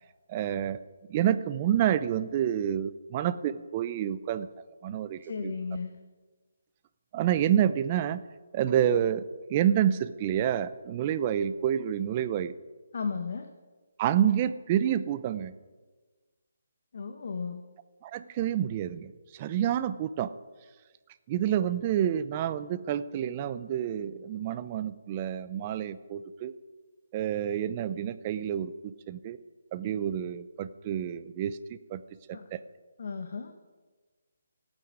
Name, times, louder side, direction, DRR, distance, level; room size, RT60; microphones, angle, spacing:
voice 1, 0.3-0.8 1.1-4.5 4.8-5.5 7.1-8.2 8.5-9.2 9.5-12.5 14.0-15.5 18.0-20.3 21.3-26.5 27.1-29.4 29.7-32.0 32.3-32.6, right 10 dB, 25° right, 13 dB, 0.7 m, -28 dB
voice 2, 5.2-6.0 12.9-13.5 16.9-17.6 32.3-32.5 33.0-33.5, left 5 dB, 60° left, 6 dB, 1.5 m, -35 dB
16.5 x 9.0 x 9.6 m, 1.3 s
hypercardioid pair, 160°, 0 cm